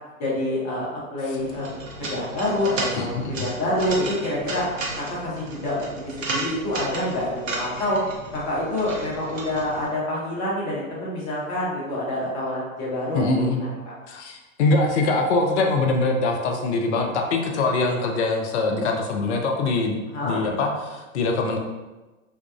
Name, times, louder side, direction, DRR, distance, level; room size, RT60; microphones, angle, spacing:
voice 1, 0.2-1.7 2.0-4.7 5.0-8.0 8.3-13.3 13.6-13.8 20.1-20.4, left 1 dB, 35° left, -6 dB, 1.2 m, -27 dB
sound 1, 1.4-9.9, right 2 dB, 65° right, 0.8 m, -34 dB
voice 2, 3.0-3.4 13.1-13.6 14.1-21.6, left 3 dB, 55° left, 2 dB, 0.5 m, -23 dB
3.5 x 2.2 x 2.3 m, 1.2 s
figure-of-eight pair, 100°, 42 cm